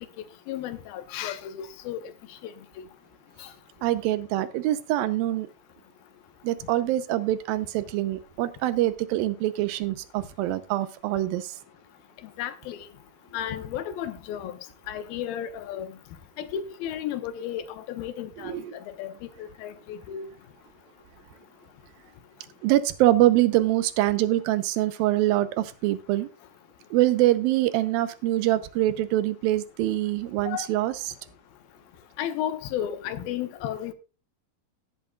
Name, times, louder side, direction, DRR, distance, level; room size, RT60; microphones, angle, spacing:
voice 1, 0.5-2.0 2.4-2.5 2.8-2.9 3.4-3.5 12.4-12.8 13.3-14.6 14.9-15.9 16.4-19.1 19.4-20.3 30.4-30.7 32.2-33.9, left 10 dB, 85° left, 2.8 m, -33 dB
voice 2, 3.8-5.5 6.4-11.6 18.4-18.8 22.6-26.3 26.9-31.1, right 15 dB, 90° right, 2.6 m, -24 dB
17.5 x 8.3 x 2.4 m
omnidirectional pair, 4.1 m